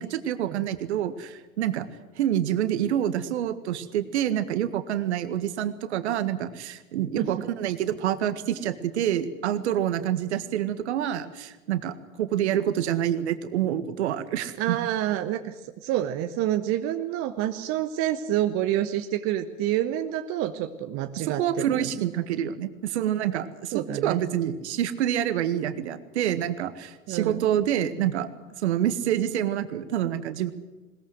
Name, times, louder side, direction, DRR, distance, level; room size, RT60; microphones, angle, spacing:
voice 1, 0.0-1.9 2.2-14.8 21.2-28.3 28.6-30.5, right 10 dB, 55° right, 12 dB, 1.8 m, -27 dB
voice 2, 14.6-15.5 15.8-22.1 23.7-24.2 27.1-27.4, right 12 dB, 35° right, 8 dB, 1.2 m, -28 dB
21.0 x 21.0 x 7.9 m, 1.2 s
figure-of-eight pair, 95°, 40 cm